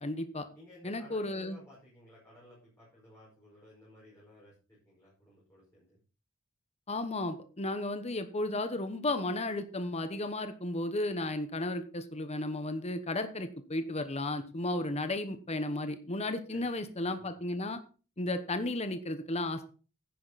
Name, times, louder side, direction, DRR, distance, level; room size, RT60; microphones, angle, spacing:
voice 1, 0.0-0.5 0.8-1.6 6.9-17.8 18.2-19.7, left 2 dB, 30° left, 9 dB, 1.1 m, -34 dB
voice 2, 0.6-6.0 16.5-16.9 17.2-17.4, left 1 dB, 15° left, -6 dB, 5.2 m, -56 dB
10.5 x 10.0 x 4.1 m, 0.36 s
head